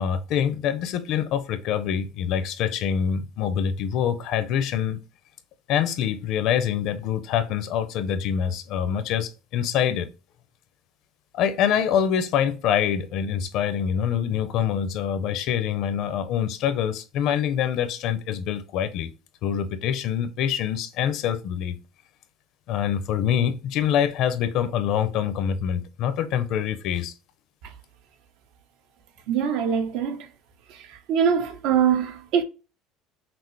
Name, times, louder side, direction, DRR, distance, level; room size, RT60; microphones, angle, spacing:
voice 1, 0.0-5.0 5.7-10.1 11.3-19.1 19.4-21.8 22.7-27.1, left 9 dB, 55° left, 0.6 m, -25 dB
voice 2, 29.3-30.3 31.1-32.4, right 8 dB, 70° right, 1.0 m, -23 dB
5.9 x 2.0 x 3.2 m
cardioid pair, 145°, 0 cm